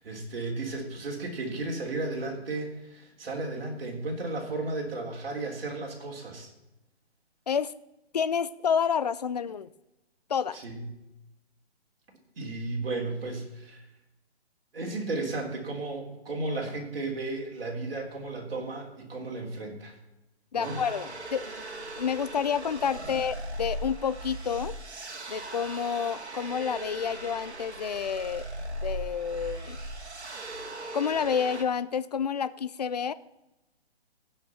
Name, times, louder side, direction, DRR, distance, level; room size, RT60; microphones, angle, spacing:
voice 1, 0.0-6.5 10.5-10.8 12.4-13.8 14.7-19.9 20.5-20.8 23.0-23.1, right 2 dB, 60° right, 0 dB, 3.5 m, -34 dB
voice 2, 8.1-9.7 10.3-10.6 20.5-21.5 22.0-24.7 25.3-28.5 28.8-29.8 30.9-33.1, left 7 dB, 40° left, 16 dB, 0.4 m, -29 dB
sound 1, 20.6-31.6, right 1 dB, 90° right, 2.3 m, -39 dB
16.0 x 5.8 x 5.7 m, 0.94 s
hypercardioid pair, 155°, 33 cm